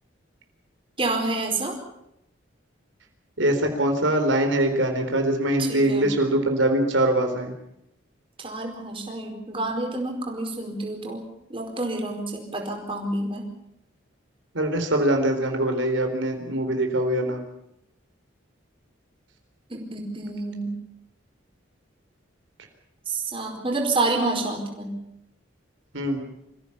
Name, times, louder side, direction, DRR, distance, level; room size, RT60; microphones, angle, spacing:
voice 1, 1.0-1.8 5.6-6.1 8.4-11.2 11.5-13.4 19.7-20.8 23.1-24.9, right 2 dB, 25° right, 1 dB, 4.8 m, -28 dB
voice 2, 3.4-7.5 14.5-17.4 25.9-26.2, right 1 dB, 75° right, 5 dB, 4.0 m, -23 dB
25.5 x 16.0 x 8.6 m, 0.81 s
head